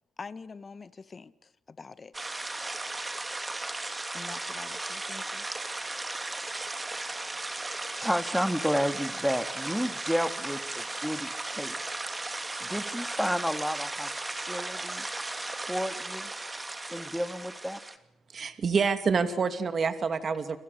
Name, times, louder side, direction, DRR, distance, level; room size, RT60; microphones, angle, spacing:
voice 1, 0.2-2.1 4.1-5.5, left 4 dB, 35° left, 1.8 m, -45 dB
sound 1, 2.1-18.0, right 2 dB, 20° right, 2.9 m, -36 dB
voice 2, 7.9-11.8 12.6-14.1 14.5-15.1 15.6-16.3 16.9-17.8, equal, ahead, 2.3 m, -31 dB
voice 3, 18.3-20.6, right 5 dB, 45° right, 2.5 m, -27 dB
29.0 x 27.0 x 6.9 m
cardioid pair, 90°, 0 cm